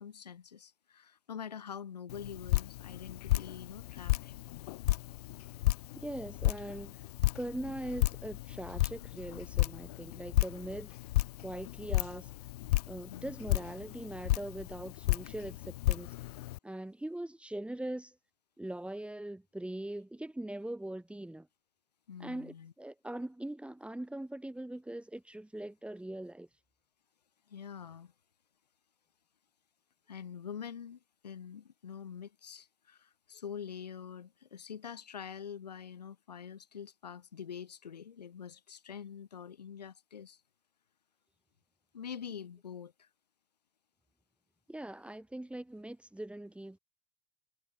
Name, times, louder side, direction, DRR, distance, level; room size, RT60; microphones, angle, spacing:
voice 1, 0.0-4.4 13.1-13.4 22.1-22.7 27.5-28.1 30.1-40.4 41.9-43.1, left 7 dB, 90° left, 2.3 m, -45 dB
Drip, 2.1-16.6, left 18 dB, 75° left, 0.7 m, -33 dB
voice 2, 5.9-6.9 7.3-11.0 11.4-12.3 12.9-16.1 16.6-18.1 18.6-21.5 22.2-26.5 44.7-46.8, right 1 dB, 5° right, 1.5 m, -41 dB
hypercardioid pair, 75°, 20 cm